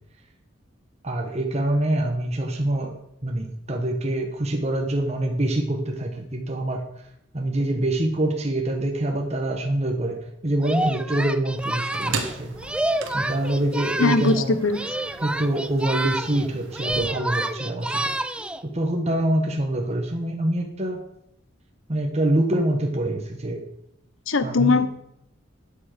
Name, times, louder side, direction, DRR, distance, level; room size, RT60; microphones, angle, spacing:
voice 1, 1.0-6.9 7.3-12.6 13.1-14.6 15.2-18.2 18.6-21.0 21.9-23.6 24.4-24.8, right 1 dB, 35° right, 2 dB, 1.2 m, -25 dB
Singing, 10.6-14.4 14.7-16.5 16.7-18.6, right 1 dB, 5° right, 0.4 m, -28 dB
sound 1, 11.6-17.1, right 4 dB, 75° right, 1.4 m, -37 dB
voice 2, 14.0-14.8 24.3-24.9, left 3 dB, 85° left, 13 dB, 0.9 m, -20 dB
9.0 x 8.3 x 6.7 m, 0.79 s
head